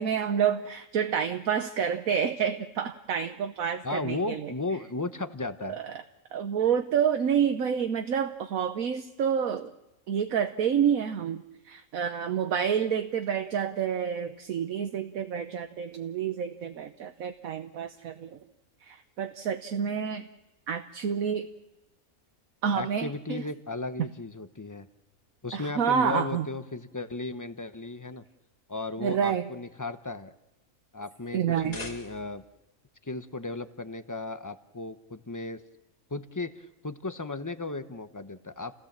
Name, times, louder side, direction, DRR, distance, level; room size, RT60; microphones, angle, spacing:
voice 1, 0.0-4.5 5.7-6.0 6.3-9.7 10.1-18.4 18.8-20.3 20.7-21.5 22.6-23.4 25.5-26.5 29.0-29.4 31.3-31.8, right 8 dB, 70° right, 7 dB, 1.4 m, -28 dB
voice 2, 3.8-5.8 22.7-24.9 25.4-28.2 28.7-30.3 30.9-32.4 33.0-35.6 36.1-38.7, left 3 dB, 15° left, 10 dB, 0.7 m, -35 dB
sound 1, 31.4-32.6, left 3 dB, 75° left, 3.0 m, -43 dB
29.5 x 17.0 x 7.4 m, 1.0 s
omnidirectional pair, 1.5 m